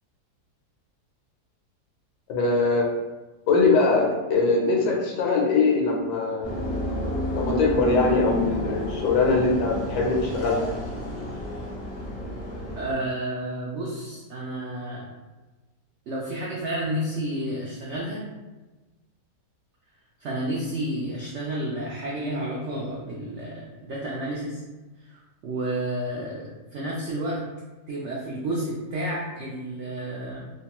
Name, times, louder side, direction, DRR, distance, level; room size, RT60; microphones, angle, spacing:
voice 1, 2.3-2.9 3.5-6.6 7.3-10.7, left 3 dB, 85° left, 0 dB, 1.2 m, -22 dB
sound 1, 6.4-12.9, left 1 dB, 35° left, 0.5 m, -30 dB
voice 2, 12.7-15.0 16.1-18.2 20.2-24.6 25.0-27.4 27.9-30.5, right 1 dB, 80° right, -4 dB, 0.6 m, -31 dB
3.0 x 2.2 x 2.8 m, 1.2 s
omnidirectional pair, 1.8 m